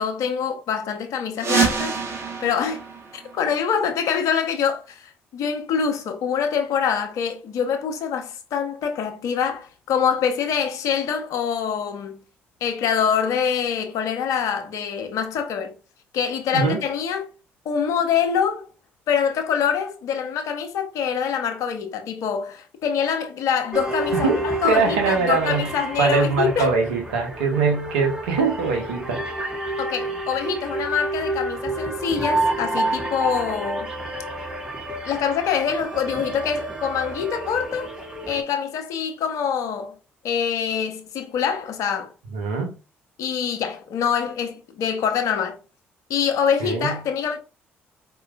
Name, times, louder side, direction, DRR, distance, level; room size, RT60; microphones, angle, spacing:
voice 1, 0.0-1.9 2.4-2.8 3.1-12.2 12.6-15.8 16.1-17.3 17.6-18.7 19.1-26.7 29.8-33.9 35.0-37.9 38.3-39.9 40.2-42.1 43.2-45.6 46.1-47.4, left 7 dB, 70° left, 0.9 m, -25 dB
sound 1, 1.3-4.0, right 6 dB, 50° right, 1.1 m, -26 dB
sound 2, 23.7-38.4, right 2 dB, 15° right, 1.5 m, -29 dB
voice 2, 24.1-25.7 26.0-29.4 42.3-42.7 46.6-47.0, right 4 dB, 85° right, 1.0 m, -22 dB
4.5 x 3.0 x 2.4 m
hypercardioid pair, 50°, 6 cm